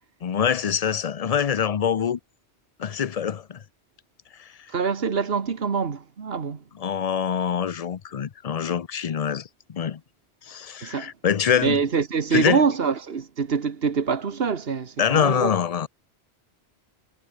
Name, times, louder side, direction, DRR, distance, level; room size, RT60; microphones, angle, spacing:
voice 1, 0.2-2.2 2.8-3.6 4.4-4.5 6.8-10.0 10.5-11.8 12.3-12.6 15.0-15.9, left 8 dB, 45° left, 0.5 m, -24 dB
voice 2, 4.7-6.6 10.8-11.1 11.6-15.5, right 6 dB, 60° right, 1.6 m, -25 dB
omnidirectional pair, 1.1 m